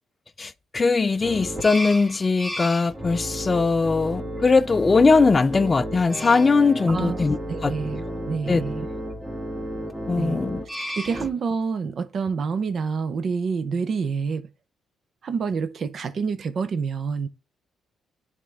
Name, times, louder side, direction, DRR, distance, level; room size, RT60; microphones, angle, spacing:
voice 1, 0.4-7.4 7.6-7.7 8.5-8.6 10.1-10.6, left 4 dB, 30° left, 0.3 m, -20 dB
sound 1, 1.2-11.3, equal, 15° right, 1.4 m, -33 dB
voice 2, 6.9-8.9 10.2-10.4 11.0-14.5 15.2-17.3, right 5 dB, 55° right, 0.6 m, -28 dB
10.0 x 3.6 x 3.3 m
cardioid pair, 90°, 0 cm